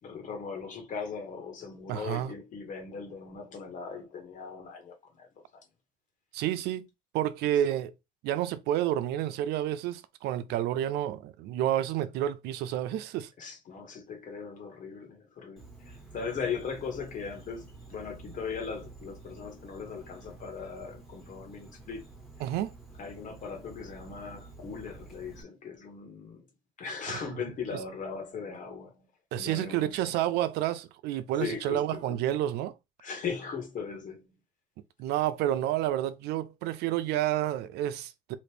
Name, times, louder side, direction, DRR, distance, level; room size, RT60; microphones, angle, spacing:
voice 1, 0.0-5.3 13.4-22.0 23.0-26.5 26.8-29.0 29.3-30.2 31.4-32.2 33.0-34.3, left 5 dB, 50° left, 1.4 m, -39 dB
voice 2, 1.9-2.3 6.3-6.9 7.1-7.9 8.2-13.3 22.4-22.7 29.3-32.7 35.0-38.3, right 12 dB, 80° right, 0.5 m, -29 dB
Insect, 15.6-25.4, right 3 dB, ahead, 1.4 m, -50 dB
3.1 x 2.5 x 3.3 m
cardioid pair, 110°, 17 cm